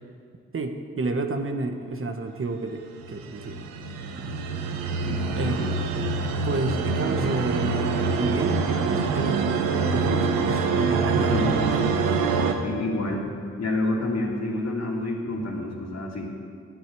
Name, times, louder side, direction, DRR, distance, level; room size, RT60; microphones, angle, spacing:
voice 1, 0.5-3.6 4.2-4.3 5.3-5.6 6.4-11.8, right 3 dB, 40° right, 6 dB, 1.3 m, -30 dB
sound 1, 2.9-12.5, right 4 dB, 90° right, 0.8 m, -25 dB
voice 2, 5.0-5.8 11.1-11.9 12.6-13.3 13.6-16.3, left 2 dB, 55° left, 0 dB, 2.5 m, -29 dB
8.5 x 8.3 x 9.3 m, 2.3 s
hypercardioid pair, 40°, 32 cm